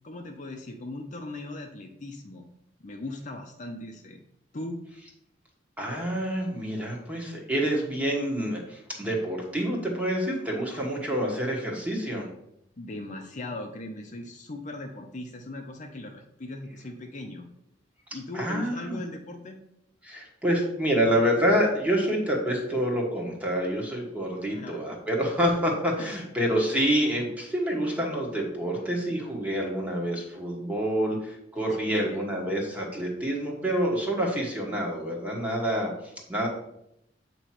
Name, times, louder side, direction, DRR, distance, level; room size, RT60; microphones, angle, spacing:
voice 1, 0.0-2.5 2.8-4.2 4.5-4.8 12.8-17.5 18.1-19.6 24.5-24.8 26.0-26.1 31.6-32.2, left 2 dB, 40° left, 3 dB, 0.7 m, -39 dB
voice 2, 5.8-12.3 18.3-19.0 20.0-35.9 36.3-36.5, equal, 10° right, -1 dB, 1.4 m, -27 dB
8.0 x 3.0 x 5.8 m, 0.80 s
head